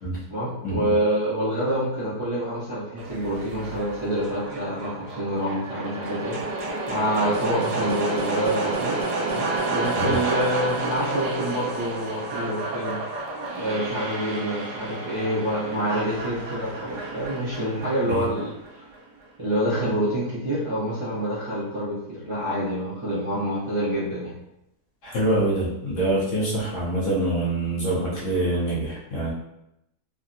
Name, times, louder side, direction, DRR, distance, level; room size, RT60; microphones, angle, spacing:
voice 1, 0.3-9.0 9.2-13.0 13.5-18.5 19.4-24.3, equal, 25° right, -12 dB, 0.6 m, -27 dB
sound 1, 3.0-19.0, right 2 dB, 90° right, 1.3 m, -30 dB
voice 2, 25.0-29.3, right 1 dB, 55° left, -6 dB, 1.0 m, -25 dB
3.5 x 2.2 x 2.5 m, 0.85 s
omnidirectional pair, 1.7 m